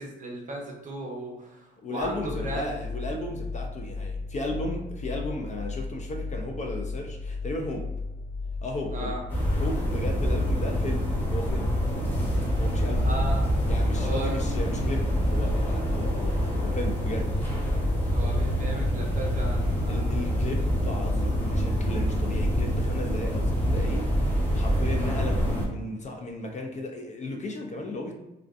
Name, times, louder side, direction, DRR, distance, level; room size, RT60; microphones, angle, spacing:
voice 1, 0.0-2.7 8.9-9.2 12.9-13.4 14.0-14.4 18.1-20.2, right 1 dB, 40° right, -1 dB, 0.7 m, -36 dB
voice 2, 1.8-7.9 8.6-9.1 9.6-11.8 12.6-13.1 13.7-17.3 19.9-28.1, left 1 dB, 35° left, 2 dB, 0.4 m, -35 dB
sound 1, 2.0-21.8, left 3 dB, 75° left, 1.1 m, -35 dB
sound 2, 9.3-25.7, equal, 10° left, 0.8 m, -26 dB
2.5 x 2.3 x 2.3 m, 0.98 s
cardioid pair, 90°, 20 cm